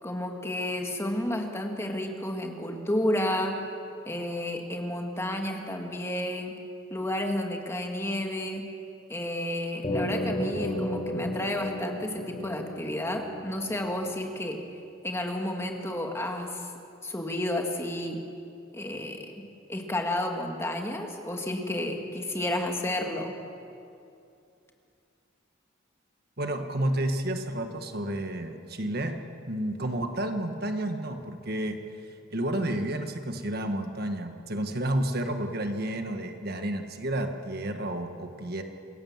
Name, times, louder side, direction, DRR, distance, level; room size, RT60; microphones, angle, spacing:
voice 1, 0.0-3.6 4.1-6.5 6.9-8.7 9.1-14.6 15.0-16.7 17.0-18.2 18.7-23.4, left 1 dB, 15° left, 2 dB, 1.9 m, -31 dB
sound 1, 9.8-14.5, equal, 30° left, 4.8 m, -33 dB
voice 2, 26.4-29.1 29.5-31.8 32.3-38.6, right 1 dB, 50° right, 6 dB, 1.5 m, -31 dB
27.0 x 17.0 x 7.3 m, 2.6 s
head